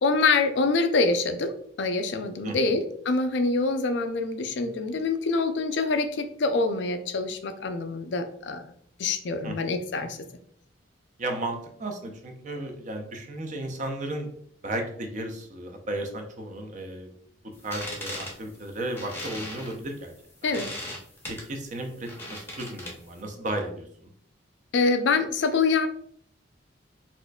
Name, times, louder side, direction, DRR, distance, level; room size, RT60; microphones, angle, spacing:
voice 1, 0.0-8.6 9.0-10.2 20.4-20.7 24.7-25.9, left 3 dB, 65° left, 8 dB, 0.4 m, -25 dB
voice 2, 2.4-2.8 9.4-9.8 11.2-14.3 14.6-17.1 17.6-20.1 21.2-24.1, right 1 dB, 40° right, 3 dB, 0.6 m, -34 dB
sound 1, 17.5-23.2, left 1 dB, 10° left, 0.7 m, -39 dB
4.2 x 2.5 x 2.2 m, 0.63 s
head